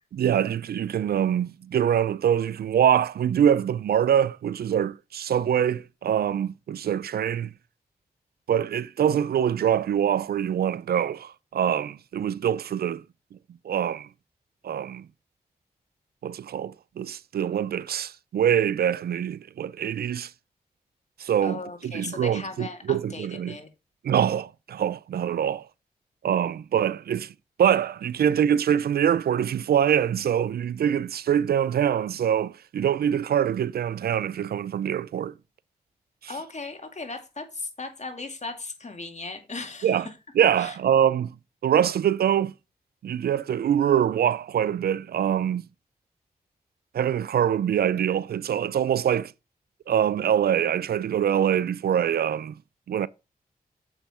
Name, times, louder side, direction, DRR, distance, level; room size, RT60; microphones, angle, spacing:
voice 1, 0.1-7.5 8.5-13.0 13.6-14.1 14.6-15.1 16.2-20.3 21.2-23.6 24.0-25.7 26.2-27.3 27.6-35.3 39.8-40.1 40.4-41.3 41.6-42.5 43.0-45.6 46.9-49.3 49.9-52.5 52.9-53.1, right 9 dB, 70° right, 0.4 m, -24 dB
voice 2, 21.4-23.7 36.3-40.1 40.6-40.8, left 3 dB, 45° left, 2.2 m, -37 dB
7.1 x 5.7 x 4.3 m
cardioid pair, 40°, 17 cm